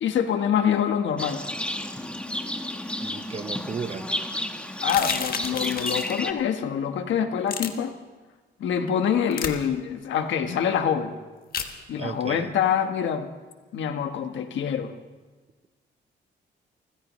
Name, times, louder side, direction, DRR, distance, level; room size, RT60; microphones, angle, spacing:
voice 1, 0.0-1.4 4.8-7.9 8.6-11.2 11.9-13.3 13.7-14.9, left 8 dB, 80° left, 7 dB, 1.3 m, -25 dB
Livestock farm animals working animals, 1.2-6.3, left 1 dB, 5° left, 1.1 m, -31 dB
voice 2, 3.0-4.1 12.0-12.5, right 5 dB, 35° right, 11 dB, 0.8 m, -34 dB
sound 1, 4.8-6.2 7.5-7.7 9.3-9.5 11.5-11.7, left 6 dB, 50° left, 1.4 m, -31 dB
29.0 x 15.5 x 3.2 m, 1.3 s
cardioid pair, 110°, 19 cm